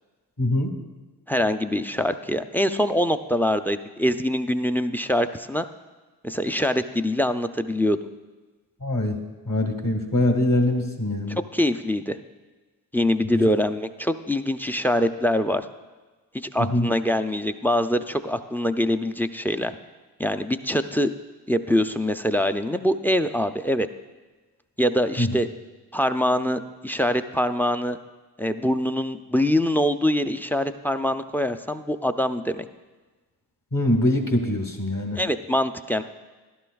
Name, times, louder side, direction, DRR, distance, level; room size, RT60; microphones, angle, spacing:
voice 1, 0.4-0.8 8.8-11.4 13.3-13.5 16.6-16.9 25.2-25.3 33.7-35.2, left 1 dB, 45° left, 3 dB, 1.8 m, -23 dB
voice 2, 1.3-5.7 6.2-8.0 11.3-12.2 12.9-15.7 16.5-19.7 20.2-21.1 21.5-23.9 24.8-25.5 25.9-28.0 28.4-32.7 35.1-36.0, left 1 dB, 5° left, 9 dB, 0.4 m, -24 dB
12.5 x 11.5 x 2.3 m, 1.3 s
supercardioid pair, 40°, 46 cm